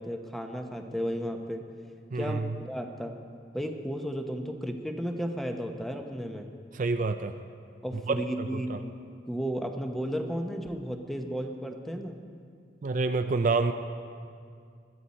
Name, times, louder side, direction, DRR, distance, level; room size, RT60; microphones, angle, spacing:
voice 1, 0.0-1.6 2.2-3.2 3.5-6.5 7.8-8.9 9.3-12.2, equal, ahead, 4 dB, 0.9 m, -34 dB
voice 2, 2.1-2.5 6.7-7.3 8.1-8.8 12.8-13.7, right 3 dB, 45° right, 8 dB, 0.5 m, -28 dB
20.5 x 13.0 x 4.3 m, 2.3 s
head